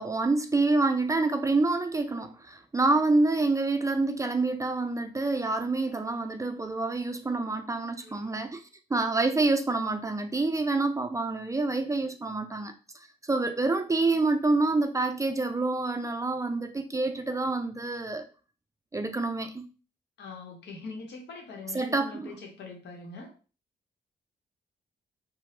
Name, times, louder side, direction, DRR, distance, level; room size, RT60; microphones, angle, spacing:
voice 1, 0.0-8.6 8.9-12.7 13.3-18.2 18.9-19.7 21.7-22.4, right 3 dB, 20° right, 0.3 m, -27 dB
voice 2, 8.0-8.5 20.2-23.3, left 3 dB, 80° left, 0.9 m, -43 dB
2.8 x 2.1 x 3.0 m
cardioid pair, 65°, 18 cm